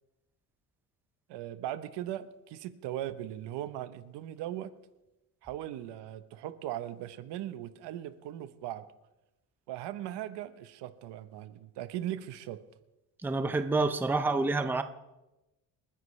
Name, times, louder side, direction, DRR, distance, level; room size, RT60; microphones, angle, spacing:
voice 1, 1.3-4.7 5.4-8.8 9.7-12.6, right 12 dB, 90° right, 12 dB, 1.1 m, -39 dB
voice 2, 13.2-14.8, right 3 dB, 5° right, 9 dB, 0.5 m, -28 dB
28.5 x 10.0 x 3.3 m, 1.0 s
cardioid pair, 160°, 40 cm